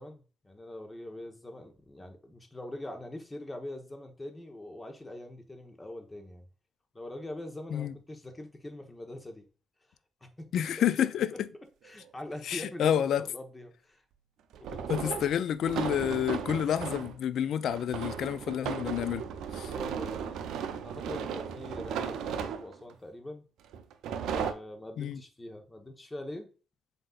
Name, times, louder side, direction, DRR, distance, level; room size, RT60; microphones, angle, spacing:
voice 1, 0.0-6.4 6.9-9.4 10.2-10.5 11.8-14.0 14.6-15.4 19.6-20.4 20.8-23.4 24.2-26.5, left 1 dB, 20° left, 1.0 m, -43 dB
voice 2, 10.5-11.5 12.5-13.2 14.9-19.2 19.5-19.7 25.0-25.2, left 9 dB, 70° left, 0.3 m, -29 dB
sound 1, 11.9-12.0 14.5-17.2 17.7-22.9 23.7-24.5, right 7 dB, 85° right, 0.4 m, -35 dB
7.6 x 2.7 x 2.4 m
cardioid pair, 90°, 0 cm